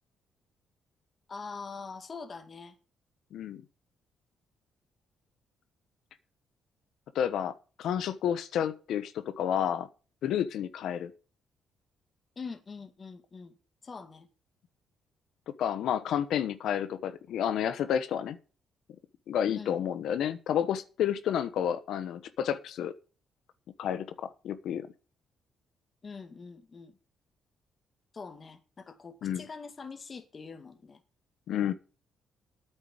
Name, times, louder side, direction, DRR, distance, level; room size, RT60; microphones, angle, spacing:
voice 1, 1.3-2.8 12.4-13.6 13.8-14.3 19.6-19.8 26.0-27.0 28.1-31.0, left 4 dB, 35° left, 2.0 m, -44 dB
voice 2, 3.3-3.6 7.1-9.9 10.2-11.1 15.6-18.4 19.3-22.9 23.8-24.9 29.2-29.5 31.5-31.7, left 9 dB, 75° left, 1.0 m, -30 dB
9.2 x 6.7 x 8.8 m
cardioid pair, 90°, 0 cm